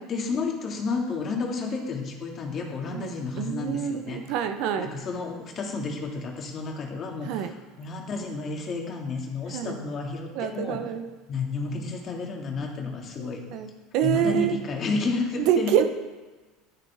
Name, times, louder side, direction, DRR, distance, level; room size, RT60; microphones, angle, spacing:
voice 1, 0.0-4.2 4.8-10.8 11.3-13.4 14.0-15.7, left 4 dB, 35° left, 1 dB, 2.1 m, -31 dB
voice 2, 3.4-4.9 7.3-7.5 9.5-9.8 10.3-11.1 13.2-13.7 13.9-14.5 15.4-15.8, right 10 dB, 65° right, 8 dB, 0.9 m, -26 dB
11.0 x 10.5 x 3.6 m, 1.3 s
supercardioid pair, 115°, 0 cm